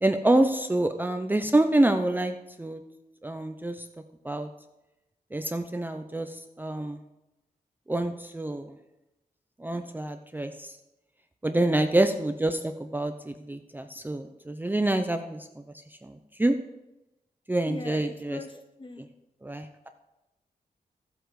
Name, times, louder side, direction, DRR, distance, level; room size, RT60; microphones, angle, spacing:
voice 1, 0.0-2.8 3.2-3.9 4.2-4.5 5.3-7.0 7.9-8.7 9.6-10.8 11.4-15.6 16.0-16.6 17.5-18.4 19.0-19.1 19.4-19.9, right 1 dB, 10° right, 6 dB, 0.6 m, -27 dB
voice 2, 17.7-19.0, left 3 dB, 30° left, 6 dB, 1.2 m, -41 dB
13.5 x 8.0 x 4.8 m, 0.97 s
wide cardioid pair, 105°, 15 cm